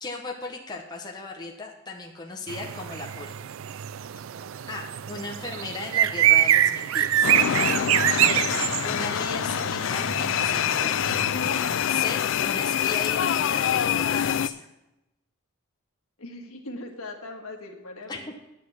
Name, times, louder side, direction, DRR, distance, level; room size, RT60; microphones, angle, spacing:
voice 1, 0.0-3.3 4.7-7.3 8.2-8.4 8.8-11.0 11.9-14.7 18.1-18.2, left 3 dB, 20° left, 0 dB, 0.9 m, -36 dB
sound 1, 2.5-11.7, right 11 dB, 65° right, 0.3 m, -25 dB
sound 2, 7.2-14.5, left 9 dB, 60° left, 0.3 m, -25 dB
voice 2, 16.2-18.3, left 2 dB, 80° left, 2 dB, 1.7 m, -40 dB
9.7 x 8.6 x 5.7 m, 0.95 s
head